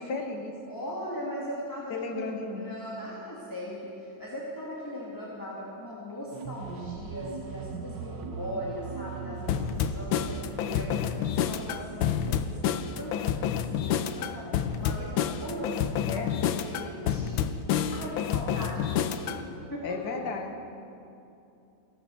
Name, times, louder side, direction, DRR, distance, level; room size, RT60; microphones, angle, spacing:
voice 1, 0.0-0.6 1.9-2.7 16.1-16.3 19.8-20.7, left 4 dB, 60° left, 3 dB, 1.9 m, -34 dB
voice 2, 0.6-13.5 13.8-17.5 17.9-20.2, equal, 10° left, -6 dB, 2.0 m, -39 dB
sound 1, 6.3-12.9, right 6 dB, 70° right, 1.5 m, -41 dB
sound 2, 9.5-19.4, left 8 dB, 90° left, 1.4 m, -29 dB
16.0 x 12.0 x 7.0 m, 2.7 s
omnidirectional pair, 2.1 m